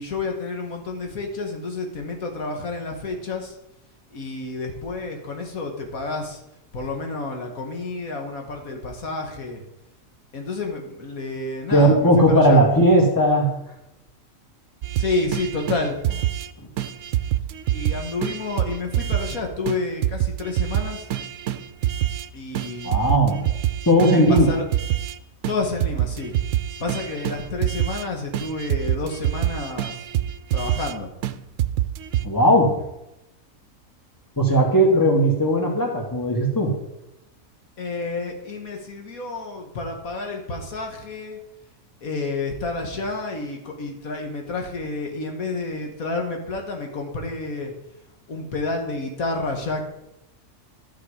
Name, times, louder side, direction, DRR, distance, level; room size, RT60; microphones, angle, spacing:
voice 1, 0.0-3.5 4.1-6.4 6.7-9.6 10.3-12.6 15.0-16.0 17.7-21.1 22.3-23.1 24.1-24.7 25.5-26.3 26.8-29.9 30.5-31.1 37.8-41.4 42.0-47.7 48.3-49.9, left 3 dB, 80° left, 3 dB, 2.0 m, -30 dB
voice 2, 11.7-13.6 16.6-16.7 22.8-23.4 23.9-24.6 32.2-32.8 34.4-36.7, equal, 15° left, 0 dB, 2.0 m, -17 dB
sound 1, 14.8-16.5 16.8-19.4 19.7-19.8 20.0-22.3 22.5-25.2 25.4-25.5 25.8-28.0 28.3-30.9 31.2-31.3 31.6-32.2, right 12 dB, 70° right, 0.9 m, -26 dB
12.0 x 6.9 x 5.0 m, 0.86 s
omnidirectional pair, 1.5 m